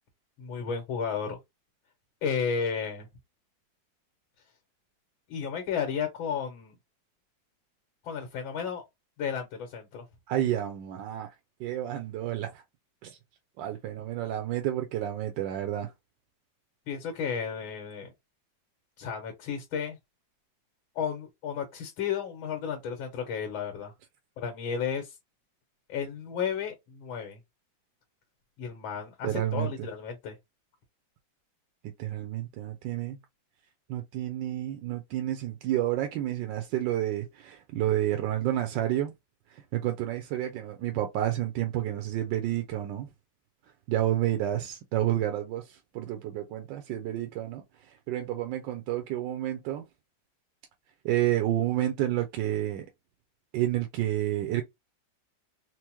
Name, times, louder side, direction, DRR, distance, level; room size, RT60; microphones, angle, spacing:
voice 1, 0.4-1.4 2.2-3.1 5.3-6.8 8.0-8.8 9.2-10.0 16.9-18.1 19.0-20.0 21.0-23.9 24.4-25.2 25.9-27.4 28.6-30.4, left 6 dB, 90° left, 1.8 m, -33 dB
voice 2, 10.3-11.3 11.6-12.6 13.0-13.2 13.6-15.9 29.2-29.9 32.0-33.2 33.9-39.1 39.5-43.1 43.9-49.8 51.0-52.9 53.5-54.6, right 13 dB, 75° right, 1.2 m, -30 dB
4.5 x 2.0 x 2.9 m
omnidirectional pair, 2.1 m